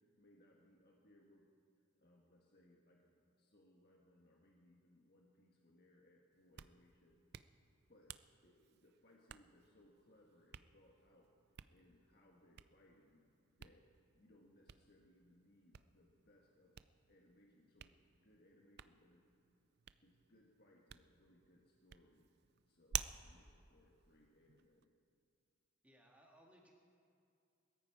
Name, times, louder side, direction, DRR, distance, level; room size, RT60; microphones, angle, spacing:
voice 1, 0.0-1.5 2.0-7.2 7.6-8.1 8.4-11.3 11.7-13.2 13.6-13.9 14.1-16.7 17.1-19.2 20.0-22.3 22.7-24.9, left 1 dB, 45° left, -2 dB, 1.5 m, -69 dB
Hands, 6.3-24.8, right 10 dB, 50° right, 0.4 m, -53 dB
voice 2, 25.8-26.7, equal, 5° right, -1 dB, 2.0 m, -65 dB
21.5 x 14.0 x 4.8 m, 2.4 s
head